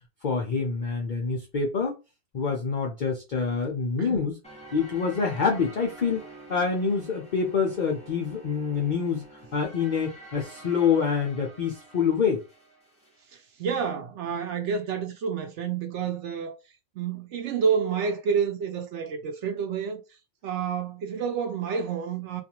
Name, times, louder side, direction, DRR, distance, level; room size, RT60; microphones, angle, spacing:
voice 1, 0.2-1.9 2.3-4.4 4.7-6.2 6.5-9.2 9.5-12.4, left 5 dB, 70° left, 0.4 m, -26 dB
voice 2, 4.0-4.3 13.6-16.5 17.0-20.0 20.4-22.4, right 6 dB, 65° right, 0.8 m, -29 dB
sound 1, 4.4-13.2, right 2 dB, 5° left, 0.6 m, -48 dB
2.5 x 2.4 x 2.8 m
omnidirectional pair, 1.5 m